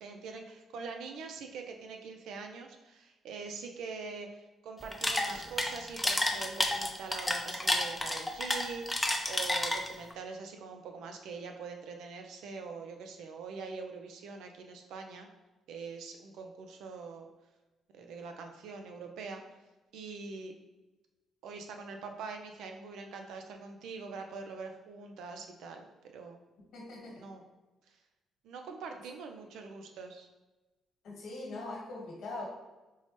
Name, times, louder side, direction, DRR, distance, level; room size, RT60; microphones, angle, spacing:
voice 1, 0.0-15.3 15.7-17.3 17.9-19.4 19.9-20.5 21.4-25.9 26.1-26.4 27.2-27.4 28.4-30.3, right 4 dB, 85° right, 4 dB, 0.5 m, -43 dB
sound 1, 4.8-10.1, left 1 dB, 10° left, 0.5 m, -30 dB
voice 2, 26.7-27.3 31.0-32.5, left 2 dB, 70° left, -3 dB, 1.3 m, -41 dB
4.5 x 2.1 x 2.9 m, 1.1 s
cardioid pair, 90°, 0 cm